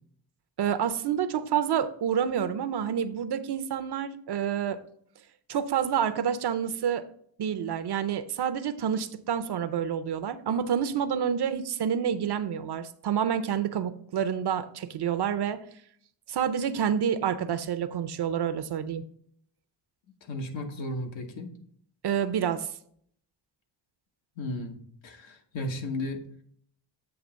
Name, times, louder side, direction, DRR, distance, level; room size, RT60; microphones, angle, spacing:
voice 1, 0.6-4.8 5.5-7.1 7.4-15.6 16.3-19.0 22.0-22.7, right 8 dB, 60° right, 12 dB, 0.6 m, -28 dB
voice 2, 20.2-21.5 24.4-24.8 25.0-26.2, left 1 dB, 75° left, 3 dB, 1.3 m, -34 dB
8.1 x 2.9 x 6.2 m, 0.63 s
cardioid pair, 100°, 45 cm